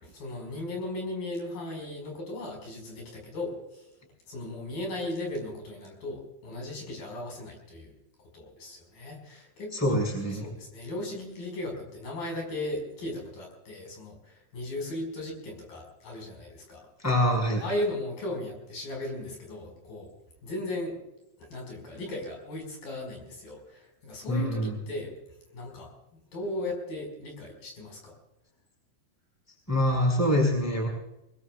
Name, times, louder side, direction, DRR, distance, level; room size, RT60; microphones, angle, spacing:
voice 1, 0.0-3.9 4.3-7.9 8.3-10.0 10.3-16.8 17.5-20.1 20.4-21.0 21.4-25.1 25.5-25.9 26.3-28.1, left 1 dB, 60° left, 1 dB, 7.0 m, -36 dB
voice 2, 9.7-10.4 17.0-17.6 24.3-24.8 29.7-30.9, equal, 5° left, 1 dB, 5.0 m, -25 dB
23.0 x 23.0 x 2.4 m, 0.90 s
omnidirectional pair, 4.4 m